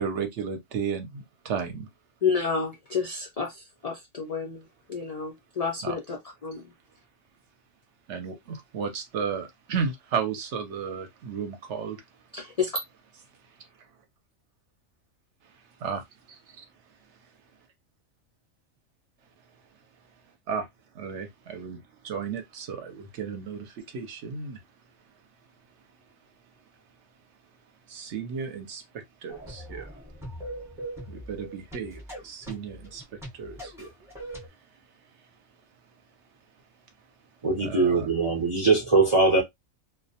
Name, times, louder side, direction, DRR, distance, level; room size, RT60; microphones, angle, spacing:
voice 1, 0.0-1.9 5.8-6.0 8.1-12.0 15.8-16.0 16.6-16.7 20.5-20.7 21.0-21.8 22.0-24.6 27.9-28.8 29.2-29.9 31.1-33.0 33.4-33.9 37.6-38.1, right 6 dB, 65° right, 0.8 m, -33 dB
voice 2, 2.2-4.6 4.9-6.6 12.3-12.8, left 5 dB, 75° left, 0.3 m, -30 dB
sound 1, 29.3-34.5, right 1 dB, ahead, 0.7 m, -41 dB
voice 3, 37.4-39.4, right 3 dB, 50° right, 0.3 m, -21 dB
2.2 x 2.1 x 2.6 m
omnidirectional pair, 1.4 m